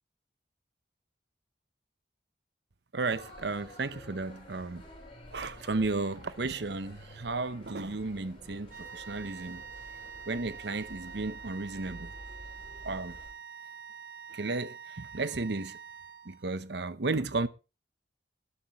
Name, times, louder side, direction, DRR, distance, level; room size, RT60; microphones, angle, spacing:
voice 1, 2.9-4.8 5.3-9.6 10.3-12.1 12.8-13.2 14.3-15.8 16.2-17.5, right 3 dB, 70° right, 0.9 m, -33 dB
sound 1, 3.1-13.3, left 1 dB, 30° left, 6.6 m, -50 dB
sound 2, 8.7-16.6, right 7 dB, 50° right, 1.8 m, -46 dB
20.5 x 11.5 x 3.1 m
head